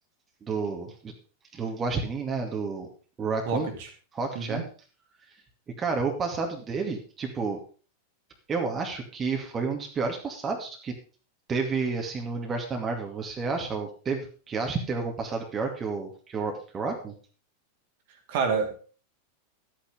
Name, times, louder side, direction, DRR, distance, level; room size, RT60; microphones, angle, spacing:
voice 1, 0.4-1.1 1.5-2.9 3.2-3.7 4.1-4.6 5.8-7.6 8.5-11.0 11.5-17.1, right 4 dB, 20° right, 2 dB, 2.3 m, -30 dB
voice 2, 3.5-3.9 4.3-4.6 18.3-18.8, right 5 dB, 50° right, 4 dB, 2.7 m, -28 dB
13.0 x 8.8 x 5.1 m, 0.38 s
figure-of-eight pair, 90°, 0 cm